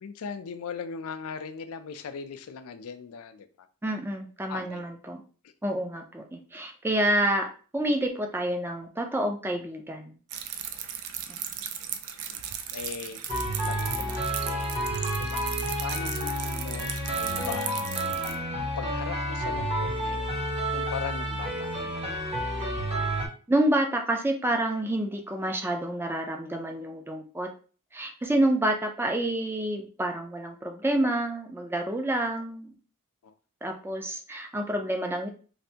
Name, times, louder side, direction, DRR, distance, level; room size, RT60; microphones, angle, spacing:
voice 1, 0.0-3.7 4.5-4.8 5.4-5.5 12.3-12.4 12.7-13.2 13.7-14.7 15.2-15.5 15.8-17.8 18.5-20.3 20.7-22.0 28.4-28.5 33.2-33.3, left 6 dB, 70° left, 0.4 m, -39 dB
voice 2, 3.8-5.2 5.6-10.1 12.2-12.3 22.6-22.8 23.5-27.5 27.9-32.7 33.6-35.3, right 1 dB, 10° right, 0.4 m, -28 dB
sound 1, 10.3-18.4, right 9 dB, 75° right, 0.4 m, -36 dB
sound 2, 13.3-23.3, right 1 dB, 30° right, 0.8 m, -30 dB
3.2 x 2.6 x 2.7 m
head